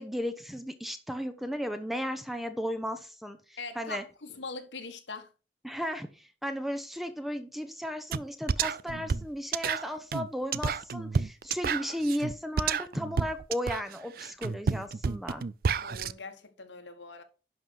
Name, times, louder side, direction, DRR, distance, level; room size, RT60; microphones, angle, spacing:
voice 1, 0.0-4.0 5.6-15.4, equal, ahead, 0.8 m, -35 dB
voice 2, 3.6-5.3 15.8-17.2, left 4 dB, 85° left, 1.7 m, -42 dB
sound 1, 8.1-8.2 8.5-16.1, right 5 dB, 50° right, 0.4 m, -30 dB
11.0 x 5.5 x 4.6 m
head